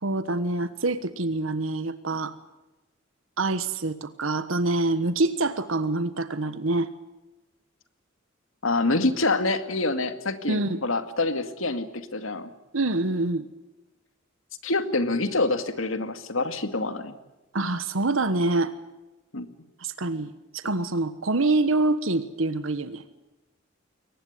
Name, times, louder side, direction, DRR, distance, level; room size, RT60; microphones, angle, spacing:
voice 1, 0.0-2.3 3.4-6.9 10.5-10.8 12.7-13.5 17.5-18.7 19.8-23.0, right 2 dB, 80° right, 12 dB, 1.3 m, -26 dB
voice 2, 8.6-12.5 14.6-17.1 19.3-19.5, left 2 dB, 85° left, 10 dB, 2.2 m, -26 dB
23.0 x 19.0 x 9.4 m, 1.1 s
head